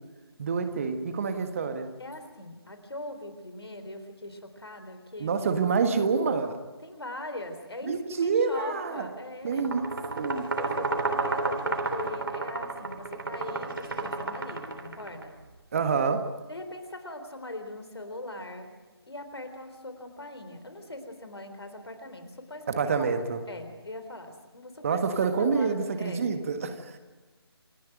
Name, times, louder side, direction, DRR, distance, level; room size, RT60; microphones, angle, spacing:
voice 1, 0.4-1.9 5.2-6.6 7.8-9.1 9.4-9.9 10.2-10.5 15.7-16.3 22.7-23.4 24.8-27.0, right 5 dB, 30° right, 1.5 m, -27 dB
voice 2, 2.0-5.5 6.8-9.7 10.6-15.3 16.5-18.7 19.1-23.1 23.5-26.2, left 1 dB, 75° left, 3.7 m, -41 dB
sound 1, 9.5-15.2, right 3 dB, 55° right, 3.5 m, -31 dB
27.5 x 11.0 x 9.0 m
figure-of-eight pair, 155°, 14 cm